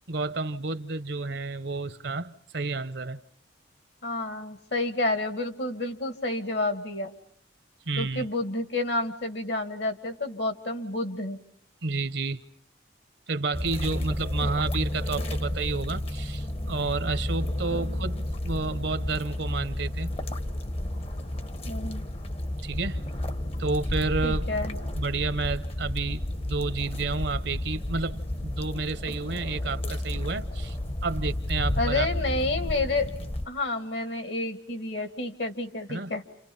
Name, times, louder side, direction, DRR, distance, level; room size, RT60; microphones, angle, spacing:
voice 1, 0.1-3.2 7.9-8.2 11.8-12.4 13.3-20.1 22.6-23.1 23.6-24.5 25.0-30.8 31.0-32.1 35.9-36.1, right 3 dB, 65° right, 0.9 m, -31 dB
voice 2, 4.0-7.1 8.0-11.4 14.4-14.5 17.7-17.8 21.7-22.0 24.2-24.8 31.8-33.1 33.5-36.2, left 2 dB, 65° left, 2.1 m, -30 dB
sound 1, 13.5-33.5, left 1 dB, 30° left, 1.0 m, -31 dB
30.0 x 28.5 x 5.5 m
head